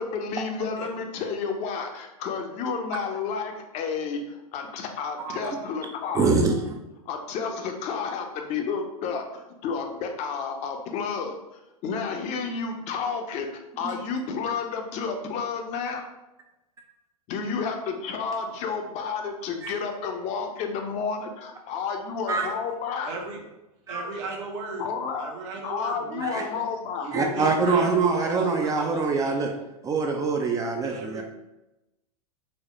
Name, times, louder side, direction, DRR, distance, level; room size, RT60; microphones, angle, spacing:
voice 1, 0.0-6.3 7.1-11.4 11.8-13.5 13.8-16.0 17.3-23.1 24.8-25.3 25.6-27.1, left 5 dB, 35° left, 4 dB, 0.6 m, -31 dB
voice 2, 5.2-5.6 6.1-6.7 13.8-14.0 19.6-19.7 22.3-22.5 23.9-24.0 26.2-26.4 27.1-29.5 29.8-31.2, right 4 dB, 15° right, 3 dB, 0.3 m, -24 dB
voice 3, 23.0-23.4 23.9-24.8 25.1-26.5 27.0-29.4 30.8-31.2, right 3 dB, 55° right, 0 dB, 0.9 m, -36 dB
4.1 x 2.1 x 3.0 m, 0.96 s
hypercardioid pair, 105°, 19 cm